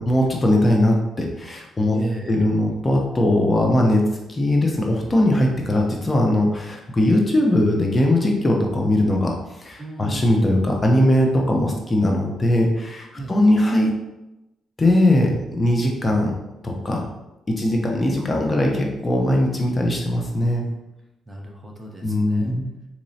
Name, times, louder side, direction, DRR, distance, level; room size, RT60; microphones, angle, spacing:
voice 1, 0.0-2.0 2.3-9.3 9.6-13.9 14.8-16.3 16.6-17.0 17.5-20.6 22.0-22.7, left 1 dB, 25° left, 0 dB, 0.7 m, -20 dB
voice 2, 1.9-2.5 9.8-10.5 13.1-13.6 20.4-20.7 21.3-22.5, right 2 dB, 20° right, 0 dB, 0.7 m, -35 dB
4.1 x 2.9 x 2.7 m, 0.95 s
cardioid pair, 90°, 0 cm